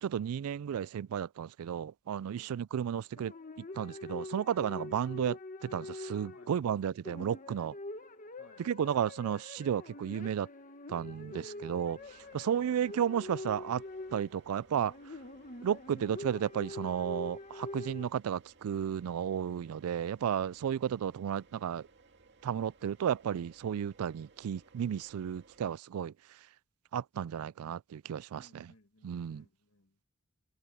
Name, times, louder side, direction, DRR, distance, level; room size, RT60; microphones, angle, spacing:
voice 1, 0.0-7.7 8.6-10.5 10.9-12.0 12.3-13.8 14.1-14.9 15.6-21.9 22.4-26.1 26.9-28.7 29.0-29.4, right 8 dB, 75° right, 0.3 m, -33 dB
sound 1, 3.2-6.8 7.0-18.1, left 2 dB, 35° left, 1.4 m, -45 dB
voice 2, 6.3-6.8 8.4-8.7 11.3-12.8 20.6-20.7 28.3-30.0, left 2 dB, 65° left, 2.1 m, -62 dB
sound 2, 12.0-25.8, right 3 dB, 50° right, 2.3 m, -62 dB
head